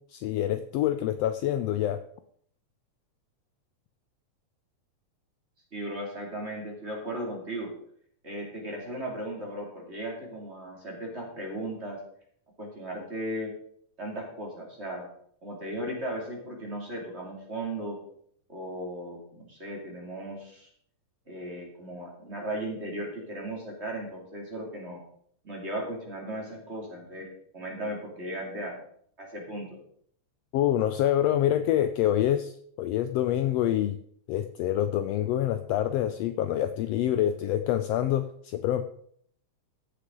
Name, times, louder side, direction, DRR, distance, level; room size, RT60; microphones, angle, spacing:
voice 1, 0.1-2.0 30.5-32.5 32.8-34.0 34.3-38.8, left 11 dB, 90° left, 10 dB, 1.4 m, -26 dB
voice 2, 5.7-7.7 8.2-12.0 12.6-13.5 14.0-15.1 15.4-18.0 18.5-20.7 21.3-25.0 25.4-27.3 27.5-28.8 29.2-29.7, right 1 dB, 25° right, -1 dB, 2.5 m, -36 dB
15.0 x 6.7 x 3.8 m, 0.63 s
omnidirectional pair, 3.4 m